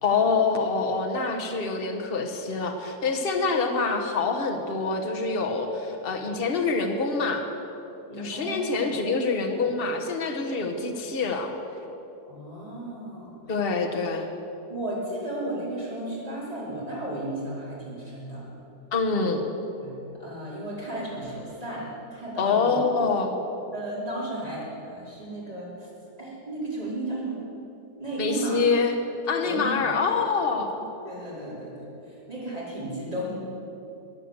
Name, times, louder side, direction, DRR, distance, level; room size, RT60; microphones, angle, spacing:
voice 1, 0.0-7.4 8.2-11.5 13.5-14.3 18.9-19.4 22.4-23.3 28.2-29.0 29.3-30.7, left 4 dB, 40° left, 3 dB, 1.3 m, -26 dB
voice 2, 8.1-8.9 9.5-9.7 10.5-10.6 12.3-13.3 14.7-18.5 19.8-22.8 23.7-25.9 26.2-27.4 28.0-28.6 29.4-29.9 30.5-33.3, right 1 dB, 20° right, -7 dB, 4.6 m, -34 dB
15.0 x 9.8 x 8.0 m, 2.9 s
omnidirectional pair, 1.7 m